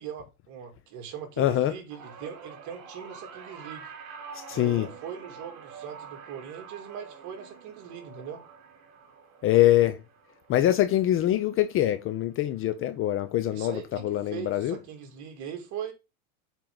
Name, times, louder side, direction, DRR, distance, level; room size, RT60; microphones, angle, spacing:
voice 1, 0.0-3.9 4.5-8.4 13.5-15.9, right 8 dB, 40° right, 2.8 m, -40 dB
voice 2, 1.4-1.7 4.3-4.9 9.4-10.0 10.5-14.8, left 13 dB, 30° left, 0.6 m, -24 dB
sound 1, 1.9-12.3 12.7-13.1 14.2-14.3, right 6 dB, 55° right, 3.4 m, -47 dB
8.7 x 4.6 x 3.8 m
supercardioid pair, 140°, 43 cm